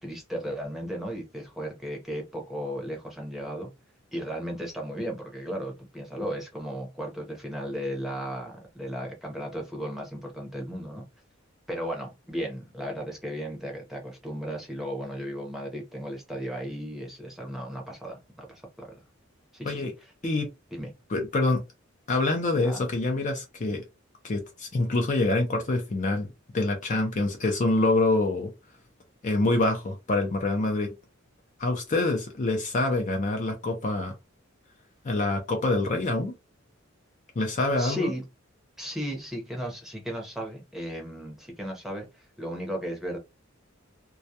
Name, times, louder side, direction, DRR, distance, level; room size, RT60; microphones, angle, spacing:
voice 1, 0.0-3.7 4.1-11.1 11.7-19.0 19.5-19.9 20.7-21.0 22.5-22.8 37.8-38.3 38.8-43.2, equal, ahead, 0.7 m, -35 dB
voice 2, 21.1-21.6 22.1-23.8 24.2-28.5 29.2-30.9 31.6-34.1 35.0-36.3 37.4-38.1, left 2 dB, 40° left, 0.5 m, -26 dB
2.3 x 2.1 x 2.7 m
head